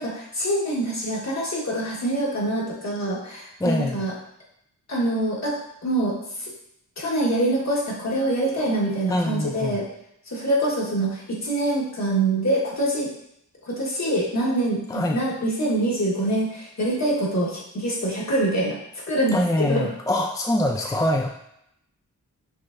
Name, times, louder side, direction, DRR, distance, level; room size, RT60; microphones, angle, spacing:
voice 1, 0.0-4.1 4.9-6.1 6.4-6.5 7.0-9.9 10.3-13.1 13.6-18.8 19.1-19.9, right 1 dB, 55° left, -4 dB, 1.5 m, -25 dB
voice 2, 3.6-4.0 9.1-9.8 14.9-15.2 19.3-21.3, left 1 dB, 10° left, 2 dB, 0.4 m, -23 dB
5.9 x 3.3 x 2.6 m, 0.76 s
wide cardioid pair, 70°, 33 cm